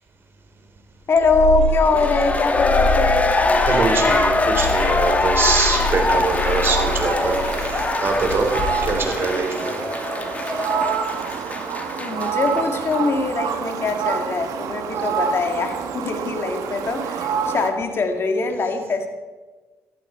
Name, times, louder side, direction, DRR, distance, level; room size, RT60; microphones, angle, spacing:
voice 1, 1.1-3.3 12.0-19.1, left 3 dB, 45° left, 5 dB, 2.0 m, -22 dB
Purr, 1.2-9.3, left 3 dB, 85° left, 0.7 m, -27 dB
sound 1, 1.8-12.6 12.9-13.0, left 2 dB, 25° left, 1.3 m, -23 dB
voice 2, 3.5-8.5 8.8-9.8 14.9-15.1, right 4 dB, 40° right, 2 dB, 3.3 m, -23 dB
Fowl, 5.7-17.7, right 7 dB, 75° right, 1.4 m, -28 dB
13.5 x 13.0 x 4.3 m, 1.3 s
cardioid pair, 85°, 6 cm